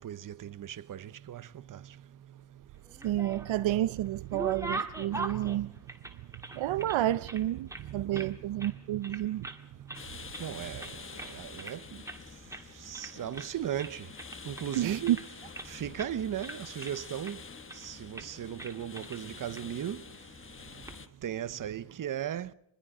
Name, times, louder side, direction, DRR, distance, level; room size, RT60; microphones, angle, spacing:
voice 1, 0.0-1.8 7.8-9.1 10.4-11.8 12.8-14.1 14.4-15.2 15.7-17.4 17.7-20.0 21.2-22.5, right 10 dB, 45° right, 0.9 m, -37 dB
sound 1, 2.9-3.7 4.1-7.0 7.3-8.3 8.6-8.8 9.0-9.6 9.9-10.5 10.8-11.8 12.1-12.2 12.5-12.7 12.9-13.5 13.8-15.7 16.0-16.1 16.4-17.3 17.7-17.9 18.1-18.3 18.6-19.2 19.5-19.6 20.6-20.9, right 2 dB, 5° right, 2.0 m, -41 dB
voice 2, 3.0-5.7 6.5-9.5 14.8-15.2, right 13 dB, 80° right, 0.7 m, -30 dB
sound 2, 9.9-21.1, left 5 dB, 25° left, 1.3 m, -47 dB
26.0 x 21.5 x 5.0 m
wide cardioid pair, 155°, 46 cm